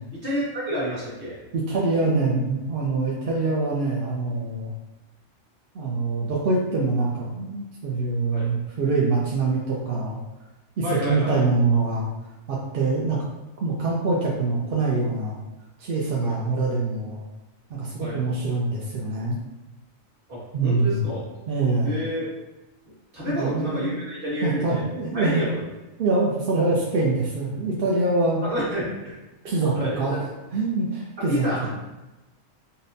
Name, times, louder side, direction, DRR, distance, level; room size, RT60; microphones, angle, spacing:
voice 1, 0.1-1.4 8.3-8.5 10.8-11.4 16.2-16.4 18.0-18.2 20.3-21.2 21.8-22.3 23.1-24.9 25.1-25.6 28.4-29.1 29.4-30.2 31.3-31.7, equal, 40° right, -7 dB, 1.6 m, -29 dB
voice 2, 1.5-4.7 5.7-10.2 10.8-12.1 12.5-13.2 13.6-15.4 15.8-17.2 17.7-19.4 20.5-21.1 21.5-22.0 23.4-24.0 24.4-25.4 26.0-28.4 29.4-31.7, right 3 dB, 60° right, -4 dB, 0.7 m, -24 dB
5.5 x 2.1 x 2.6 m, 1.1 s
omnidirectional pair, 1.4 m